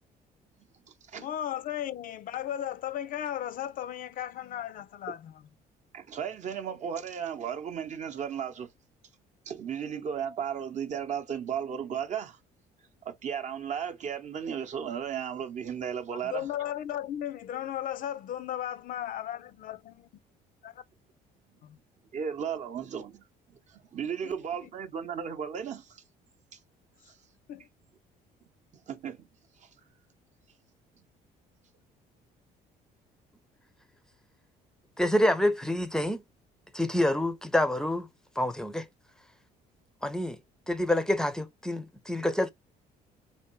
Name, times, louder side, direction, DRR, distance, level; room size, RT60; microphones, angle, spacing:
voice 1, 1.1-5.4 16.2-20.1 20.6-20.8 21.6-21.8 24.2-24.3 27.5-27.7, left 11 dB, 55° left, 0.4 m, -35 dB
voice 2, 5.9-8.7 9.5-12.4 13.0-16.5 22.1-23.2 23.5-26.0 27.1-27.2 28.9-29.3 29.6-29.7, right 8 dB, 45° right, 0.7 m, -35 dB
voice 3, 35.0-36.2 36.7-38.1 38.4-38.9 40.0-40.4 40.7-42.5, left 1 dB, 5° left, 0.5 m, -27 dB
3.4 x 2.7 x 3.0 m
cardioid pair, 110°, 17 cm